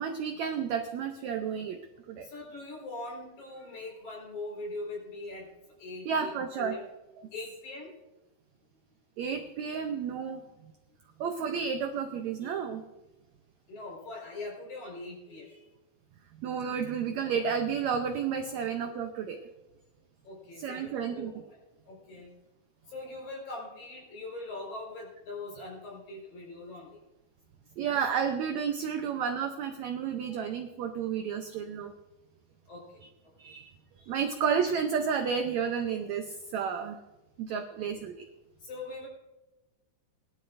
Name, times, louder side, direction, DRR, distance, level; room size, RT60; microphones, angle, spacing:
voice 1, 0.0-1.8 2.1-2.3 6.0-6.7 9.2-10.4 11.2-12.8 16.4-19.4 20.6-21.3 27.8-31.9 33.4-33.7 34.1-37.0 37.4-38.1, right 7 dB, 80° right, 5 dB, 1.6 m, -31 dB
voice 2, 2.2-5.5 5.8-6.3 6.6-6.8 7.3-7.9 10.2-10.4 13.7-15.7 17.2-17.3 18.5-18.6 20.2-22.3 22.9-27.0 30.3-30.5 32.7-33.0 34.0-34.1 37.9-38.0 38.6-39.1, left 2 dB, 55° left, -2 dB, 5.9 m, -42 dB
21.0 x 12.0 x 2.6 m, 1.0 s
omnidirectional pair, 4.1 m